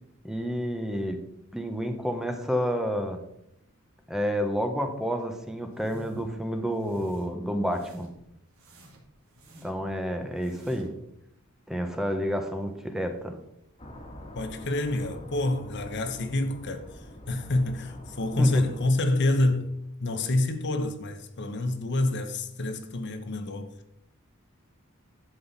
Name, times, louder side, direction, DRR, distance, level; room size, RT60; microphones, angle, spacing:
voice 1, 0.2-1.2 1.5-3.2 4.1-8.1 9.6-10.9 11.7-13.3 18.4-18.5, equal, ahead, 1.0 m, -29 dB
sound 1, 5.7-6.3 6.7-7.3 7.7-8.2 8.6-9.9 10.3-11.0, equal, 70° right, 2.4 m, -49 dB
sound 2, 13.8-18.9, left 1 dB, 30° left, 1.7 m, -45 dB
voice 2, 14.3-19.7 20.0-23.7, left 2 dB, 55° left, 1.0 m, -27 dB
11.5 x 7.8 x 4.1 m
head